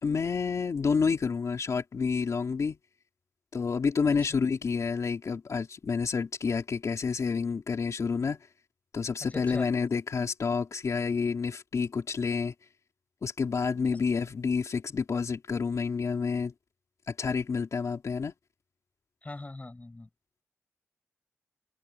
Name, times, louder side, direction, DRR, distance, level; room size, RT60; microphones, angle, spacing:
voice 1, 0.0-2.8 3.5-8.4 8.9-12.5 13.2-16.5 17.1-18.3, left 5 dB, 75° left, 3.4 m, -29 dB
voice 2, 9.3-9.7 19.2-20.1, left 2 dB, 25° left, 7.3 m, -40 dB
wide cardioid pair, 100°, 5 cm